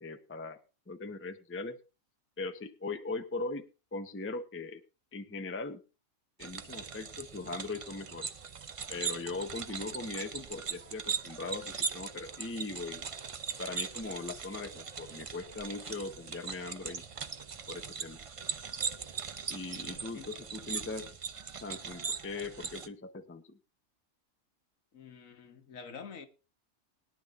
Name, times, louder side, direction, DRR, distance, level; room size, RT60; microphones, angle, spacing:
voice 1, 0.0-0.6 0.9-1.8 2.4-4.8 5.1-5.8 6.4-8.3 8.9-13.1 13.6-17.0 17.7-18.2 19.5-21.1 21.6-23.6, left 3 dB, 15° left, 0.6 m, -40 dB
sound 1, 6.4-22.9, right 6 dB, 50° right, 0.3 m, -40 dB
voice 2, 19.9-20.3 24.9-26.3, left 6 dB, 70° left, 1.6 m, -48 dB
20.5 x 10.5 x 2.5 m
omnidirectional pair, 1.5 m